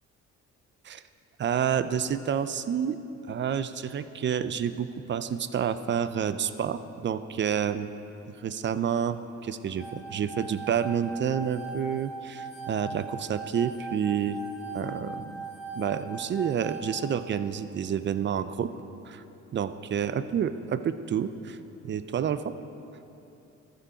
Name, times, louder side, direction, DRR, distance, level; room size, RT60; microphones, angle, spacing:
voice 1, 1.4-3.0 3.3-7.9 8.3-14.4 14.7-15.4 15.8-18.7 19.1-19.2 19.5-21.6 21.8-22.5, right 8 dB, 40° right, 12 dB, 0.4 m, -29 dB
sound 1, 9.8-16.8, right 2 dB, 45° left, 1.4 m, -40 dB
14.0 x 5.1 x 4.8 m, 2.9 s
cardioid pair, 90°, 30 cm